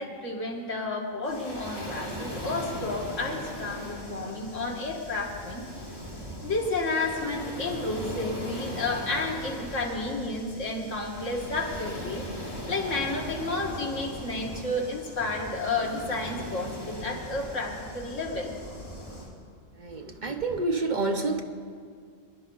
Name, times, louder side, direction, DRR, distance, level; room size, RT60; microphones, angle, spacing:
voice 1, 0.0-5.7 6.4-18.5, left 2 dB, 70° left, -2 dB, 2.3 m, -31 dB
Waves surf, 1.2-19.3, equal, 25° right, 3.2 m, -39 dB
voice 2, 19.8-21.4, right 3 dB, 40° right, 4 dB, 0.8 m, -28 dB
24.0 x 11.0 x 3.9 m, 2.1 s
omnidirectional pair, 1.4 m